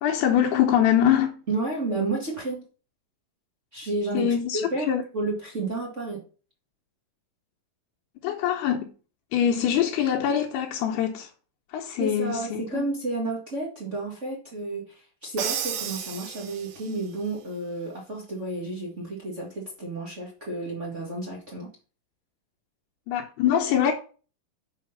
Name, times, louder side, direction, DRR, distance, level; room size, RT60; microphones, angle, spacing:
voice 1, 0.0-1.4 4.1-5.0 8.2-8.9 9.3-11.3 11.7-12.8 23.1-23.9, left 9 dB, 80° left, 2.9 m, -24 dB
voice 2, 1.5-2.6 3.7-6.2 12.0-21.7, right 2 dB, 45° right, 0.9 m, -31 dB
Crash cymbal, 15.4-17.0, right 8 dB, 70° right, 2.1 m, -32 dB
6.6 x 6.2 x 5.6 m
omnidirectional pair, 4.6 m